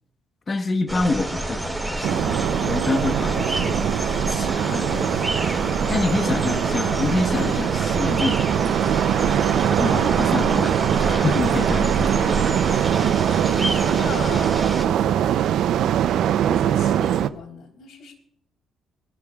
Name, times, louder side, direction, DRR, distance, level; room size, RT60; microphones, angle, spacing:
voice 1, 0.5-3.8 4.3-5.3 5.9-8.4 9.8-12.5, left 3 dB, 35° left, 1.2 m, -27 dB
sound 1, 0.9-14.8, right 1 dB, 5° right, 4.1 m, -28 dB
sound 2, 2.0-17.3, right 10 dB, 70° right, 0.5 m, -22 dB
voice 2, 13.6-15.7 16.1-18.1, left 5 dB, 65° left, 3.6 m, -38 dB
22.5 x 12.5 x 2.4 m
cardioid pair, 80°, 0 cm